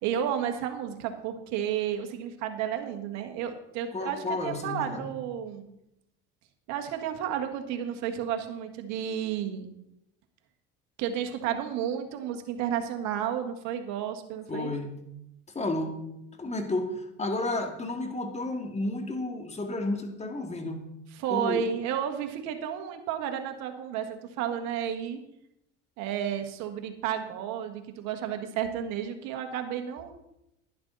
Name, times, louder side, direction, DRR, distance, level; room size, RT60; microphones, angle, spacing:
voice 1, 0.0-5.7 6.7-9.8 11.0-14.7 21.1-25.2 26.0-30.1, right 9 dB, 70° right, 5 dB, 1.7 m, -32 dB
voice 2, 3.9-5.0 14.5-14.9 15.5-16.0 16.4-20.8 21.3-21.6, left 2 dB, 25° left, 4 dB, 2.4 m, -32 dB
11.0 x 11.0 x 4.1 m, 0.84 s
supercardioid pair, 80°, 29 cm